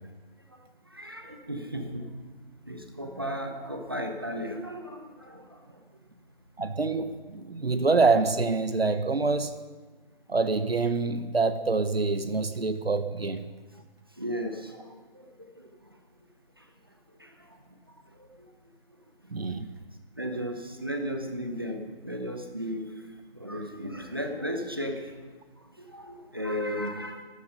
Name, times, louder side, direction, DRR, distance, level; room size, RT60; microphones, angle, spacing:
voice 1, 0.9-2.1 2.7-5.4 14.2-14.9 15.4-15.5 17.2-17.3 20.2-22.9 23.4-25.0 25.9-27.2, equal, 25° right, 4 dB, 0.9 m, -34 dB
voice 2, 6.6-9.6 10.3-13.4 19.3-19.7, right 4 dB, 80° right, 10 dB, 1.2 m, -26 dB
15.5 x 13.0 x 5.5 m, 1.4 s
figure-of-eight pair, 175°, 30 cm